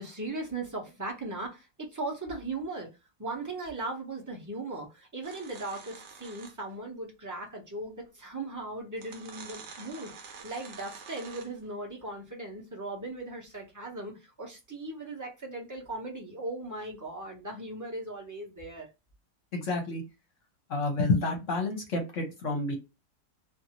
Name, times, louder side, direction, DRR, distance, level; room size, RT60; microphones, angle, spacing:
voice 1, 0.0-2.9 3.2-18.9, right 2 dB, 15° right, 0.7 m, -38 dB
sound 1, 5.2-6.8 8.1-8.2 8.9-11.7, right 5 dB, 65° right, 1.0 m, -47 dB
voice 2, 19.5-20.0 20.7-22.8, left 2 dB, 60° left, 1.0 m, -29 dB
2.6 x 2.6 x 2.9 m
omnidirectional pair, 1.7 m